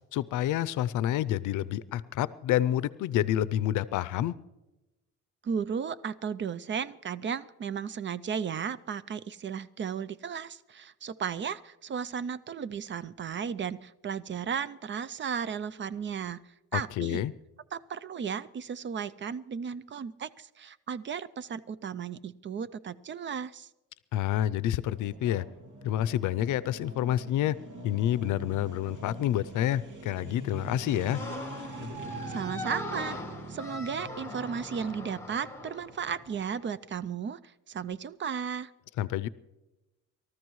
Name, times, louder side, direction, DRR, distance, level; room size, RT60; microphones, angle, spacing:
voice 1, 0.1-4.3 16.7-17.3 24.1-25.4 25.8-27.6 27.8-31.2 39.0-39.3, left 12 dB, 80° left, 18 dB, 0.5 m, -28 dB
voice 2, 5.4-16.4 16.7-17.2 17.7-23.7 32.3-33.2 33.5-38.7, right 7 dB, 40° right, 17 dB, 0.5 m, -35 dB
sound 1, 25.0-36.4, right 1 dB, 80° right, 2.5 m, -44 dB
sound 2, 31.1-36.8, left 1 dB, 10° left, 1.5 m, -41 dB
24.5 x 13.5 x 3.1 m, 1.0 s
cardioid pair, 90°, 30 cm